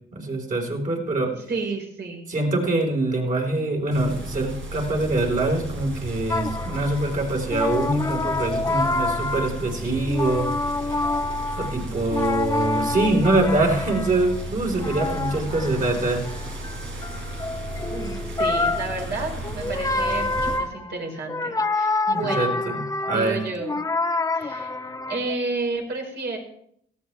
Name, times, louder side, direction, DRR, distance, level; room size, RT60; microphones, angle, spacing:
voice 1, 0.1-1.3 2.3-10.7 11.6-16.2 22.1-23.4, right 2 dB, 40° right, 0 dB, 4.7 m, -24 dB
voice 2, 1.2-2.3 17.9-22.6 23.1-23.8 24.3-24.7 25.1-26.4, right 3 dB, 60° right, 0 dB, 5.4 m, -31 dB
sound 1, 3.9-20.6, right 1 dB, 85° right, 5.1 m, -34 dB
sound 2, 6.3-7.1 7.5-9.8 10.1-14.3 14.7-25.4, left 3 dB, 15° left, 0.7 m, -27 dB
18.0 x 14.5 x 3.5 m, 0.69 s
cardioid pair, 90°, 20 cm